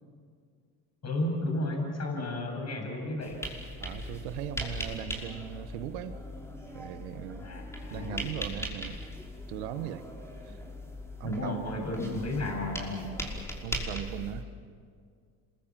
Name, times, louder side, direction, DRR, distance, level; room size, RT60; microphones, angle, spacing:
voice 1, 1.0-3.4 7.4-8.3 10.5-10.6 11.2-13.0, left 1 dB, 40° left, 2 dB, 7.6 m, -33 dB
sound 1, 3.2-14.4, equal, 5° left, 5.5 m, -39 dB
voice 2, 3.8-6.2 6.7-7.4 7.9-9.0 9.5-10.1 10.4-10.6 11.2-11.8 13.6-14.5, right 11 dB, 85° right, 11 dB, 1.3 m, -38 dB
27.0 x 22.0 x 7.6 m, 2.1 s
supercardioid pair, 75°, 41 cm